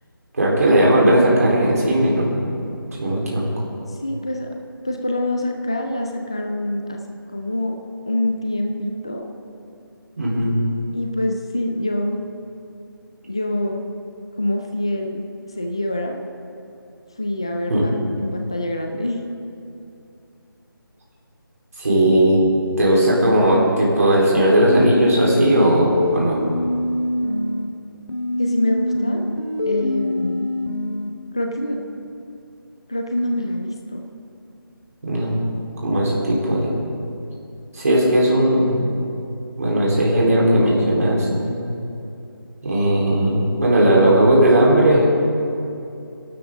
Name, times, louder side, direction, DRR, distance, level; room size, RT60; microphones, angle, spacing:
voice 1, 0.3-2.4 3.0-3.5 10.2-10.6 17.7-17.8 21.8-22.4 22.8-26.4 35.0-35.4 35.8-36.8 37.7-38.8 39.6-41.6 42.6-45.1, right 1 dB, 45° right, -4 dB, 4.0 m, -17 dB
voice 2, 4.0-4.5 4.8-7.0 7.3-7.8 8.1-9.3 10.9-12.2 13.2-13.8 14.4-15.3 15.6-16.2 17.2-19.2 22.8-23.4 24.4-24.5 28.4-29.3 29.7-30.5 31.3-31.8 32.9-34.1, left 1 dB, 15° left, 4 dB, 0.4 m, -25 dB
sound 1, 24.7-27.7 28.1-31.1, left 1 dB, 80° left, 2.3 m, -24 dB
28.0 x 12.5 x 3.8 m, 2.7 s
figure-of-eight pair, 170°, 12 cm